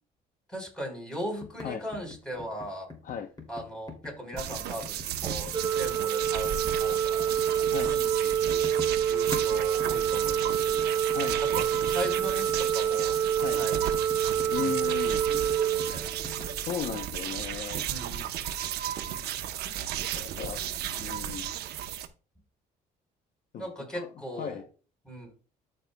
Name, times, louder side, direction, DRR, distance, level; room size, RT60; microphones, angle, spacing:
voice 1, 0.5-2.9 3.5-7.3 7.9-11.2 11.5-13.2 13.5-14.0 15.3-15.4 15.6-16.1 17.9-18.3 19.1-19.2 23.6-24.6 25.0-25.3, equal, 5° left, 0 dB, 4.3 m, -39 dB
sound 1, 1.4-9.5 9.8-16.7, left 3 dB, 25° left, 2.6 m, -44 dB
sound 2, 4.4-22.1, right 10 dB, 75° right, 0.9 m, -34 dB
Organ, 5.5-16.6, right 9 dB, 20° right, 0.8 m, -27 dB
voice 2, 14.5-15.2 16.5-17.9 20.1-20.6 20.9-21.5 23.5-23.7 23.9-24.1 24.4-24.6, left 8 dB, 50° left, 8 dB, 0.7 m, -36 dB
13.5 x 5.4 x 2.2 m, 0.35 s
cardioid pair, 110°, 17 cm